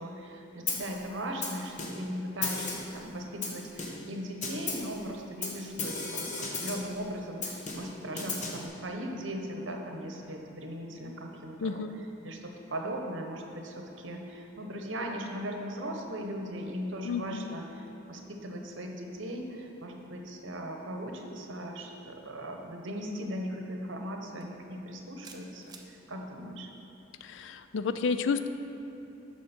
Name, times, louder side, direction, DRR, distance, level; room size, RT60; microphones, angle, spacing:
voice 1, 0.0-26.7, equal, 65° right, 2 dB, 1.0 m, -38 dB
Snare drum, 0.7-1.0 1.4-2.1 2.4-3.0 3.4-4.1 4.4-4.9 5.4-6.9 7.4-8.7, left 3 dB, 40° left, 1.1 m, -35 dB
voice 2, 11.6-12.0 17.0-17.6 27.2-28.5, left 5 dB, 65° left, 11 dB, 0.4 m, -31 dB
sound 1, 24.4-24.6 25.2-25.9, right 5 dB, 20° right, 0.6 m, -49 dB
13.5 x 5.1 x 4.3 m, 3.0 s
head